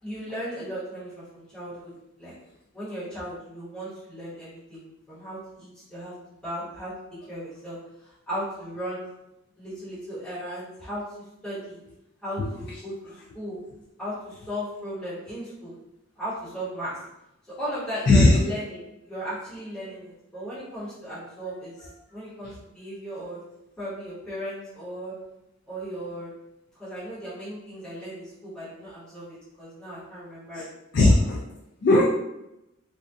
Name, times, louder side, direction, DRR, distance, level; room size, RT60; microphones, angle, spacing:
voice 1, 0.0-2.3 2.7-6.1 6.4-6.9 7.3-7.8 8.0-9.1 9.6-11.0 11.4-11.8 12.2-13.6 14.0-15.7 16.2-17.0 17.6-23.4 23.8-25.1 25.7-26.3 26.8-30.6, equal, 5° left, -13 dB, 1.0 m, -36 dB
voice 2, 18.1-18.4 21.4-21.5 30.9-31.4 31.8-32.0, left 2 dB, 55° left, -3 dB, 0.3 m, -17 dB
2.6 x 2.3 x 2.3 m, 0.90 s
head